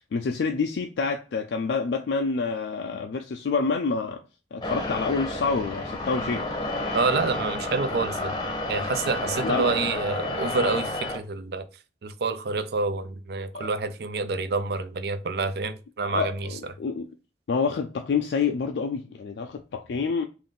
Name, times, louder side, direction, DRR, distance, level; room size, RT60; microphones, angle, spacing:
voice 1, 0.1-4.2 4.5-6.5 9.4-9.8 13.5-13.7 16.0-17.1 17.5-20.3, left 4 dB, 85° left, 0.4 m, -27 dB
sound 1, 4.6-11.2, left 2 dB, 25° left, 0.7 m, -31 dB
voice 2, 6.9-8.3 8.7-11.6 12.0-16.5, right 4 dB, 65° right, 0.4 m, -28 dB
3.7 x 2.5 x 3.6 m
head